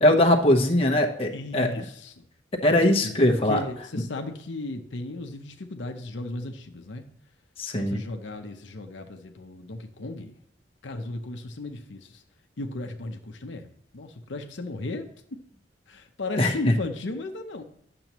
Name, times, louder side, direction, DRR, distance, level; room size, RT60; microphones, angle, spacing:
voice 1, 0.0-1.8 2.6-3.6 7.6-8.0 16.4-16.7, left 1 dB, 30° left, 1 dB, 1.0 m, -21 dB
voice 2, 1.3-2.2 2.8-7.1 7.8-10.4 10.8-12.2 12.6-13.7 13.9-15.1 15.9-17.6, left 2 dB, 75° left, 5 dB, 0.8 m, -35 dB
10.5 x 6.9 x 3.0 m, 0.71 s
head